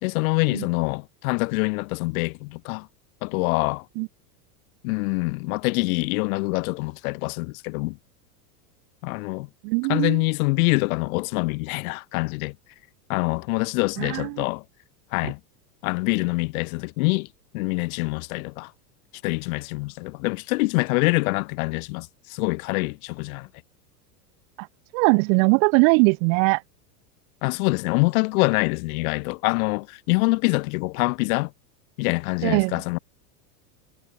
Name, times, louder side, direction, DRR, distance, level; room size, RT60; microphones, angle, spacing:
voice 1, 0.0-2.9 3.2-3.8 4.8-8.0 9.0-9.5 9.9-12.5 13.1-14.6 15.1-15.4 15.8-17.3 17.5-18.7 19.2-23.5 27.4-31.5 32.0-33.0, left 26 dB, 60° left, 2.3 m, -25 dB
voice 2, 9.6-10.2 14.0-14.4 24.6-24.7 24.9-26.6 32.4-32.8, right 40 dB or more, 50° right, 1.4 m, -20 dB
supercardioid pair, 130°, 47 cm